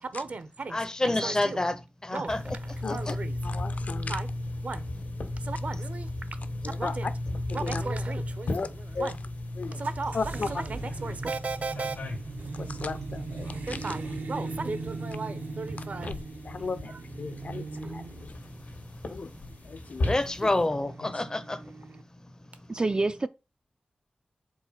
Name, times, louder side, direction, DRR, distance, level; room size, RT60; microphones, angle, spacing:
voice 1, 0.0-1.6 2.1-3.4 4.1-4.3 4.6-4.9 5.4-6.1 6.8-7.1 7.5-9.2 9.6-10.2 10.5-12.0 13.7-16.2 16.9-17.0, right 4 dB, 60° right, 0.8 m, -36 dB
voice 2, 0.7-2.6 2.9-3.1 20.0-21.6, left 2 dB, 25° left, 0.6 m, -28 dB
sound 1, 2.3-20.7, left 1 dB, 90° left, 1.8 m, -36 dB
voice 3, 2.8-3.2 3.4-4.2 6.6-6.9 7.5-7.8 8.5-8.7 8.9-9.1 9.6-9.8 10.1-10.6 12.5-13.8 16.0-16.1 16.4-18.4 19.1-19.3 19.6-20.1 21.0-21.1, left 4 dB, 60° left, 0.6 m, -35 dB
sound 2, 9.8-22.0, right 3 dB, 80° right, 0.9 m, -40 dB
voice 4, 22.7-23.3, right 3 dB, 30° right, 0.3 m, -27 dB
4.7 x 3.9 x 5.6 m
wide cardioid pair, 120°, 3 cm